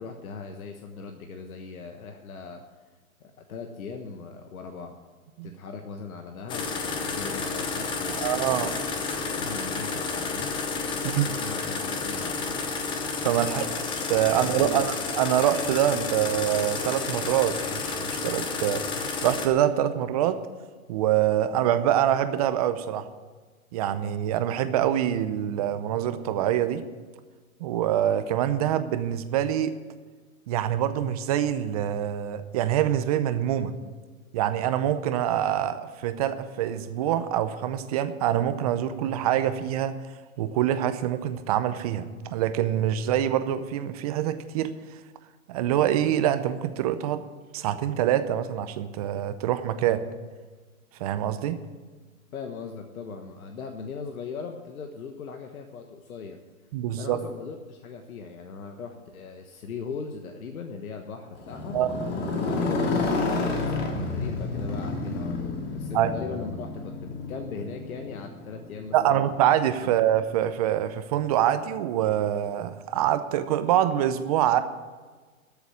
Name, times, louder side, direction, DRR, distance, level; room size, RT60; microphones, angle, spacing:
voice 1, 0.0-2.6 3.2-4.9 5.4-8.8 9.4-10.6 10.9-12.6 13.4-13.9 14.3-14.9 52.3-56.4 56.9-61.8 62.4-69.4 69.8-69.9, left 5 dB, 75° left, 4 dB, 1.4 m, -39 dB
sound 1, 6.5-19.5, left 4 dB, 10° left, 0.7 m, -31 dB
voice 2, 8.2-8.7 11.1-11.3 13.2-13.6 14.1-18.8 19.2-20.4 20.9-23.1 23.7-26.8 27.6-29.7 30.5-33.7 34.3-39.9 40.4-44.7 45.5-47.2 47.5-50.0 51.0-51.6 56.7-57.2 61.7-62.0 65.9-66.1 68.9-74.6, right 11 dB, 25° right, 11 dB, 0.6 m, -25 dB
Motorcycle, 61.3-69.4, left 3 dB, 45° left, 2.8 m, -30 dB
13.0 x 7.1 x 9.9 m, 1.4 s
hypercardioid pair, 145°, 43 cm